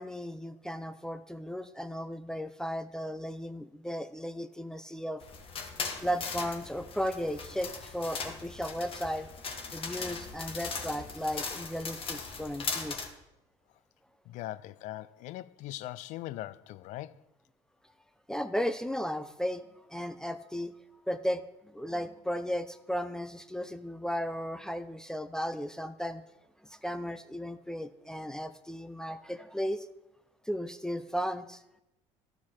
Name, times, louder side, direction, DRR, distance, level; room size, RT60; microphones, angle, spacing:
voice 1, 0.0-5.2 6.0-9.3 9.7-13.1 18.3-20.7 21.1-26.2 26.6-29.9 30.5-31.6, equal, 5° left, 0.4 m, -35 dB
sound 1, 5.2-13.1, left 5 dB, 45° left, 1.2 m, -39 dB
voice 2, 14.3-17.2, left 15 dB, 65° left, 0.4 m, -40 dB
12.0 x 4.6 x 4.3 m
supercardioid pair, 85°, 13 cm